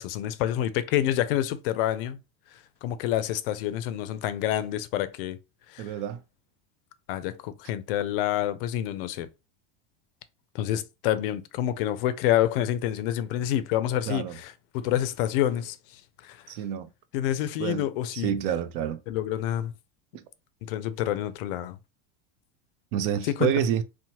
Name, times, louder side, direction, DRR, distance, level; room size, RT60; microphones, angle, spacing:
voice 1, 0.0-2.2 2.8-5.4 5.7-5.9 7.1-9.3 10.5-16.4 17.1-18.3 19.1-19.7 20.6-21.8 23.2-23.5, left 12 dB, 65° left, 0.4 m, -28 dB
voice 2, 5.8-6.2 14.1-14.4 16.5-16.9 17.6-17.9 18.1-19.0 20.1-20.2 22.9-23.8, right 9 dB, 60° right, 0.4 m, -28 dB
2.9 x 2.1 x 2.8 m
supercardioid pair, 155°, 30 cm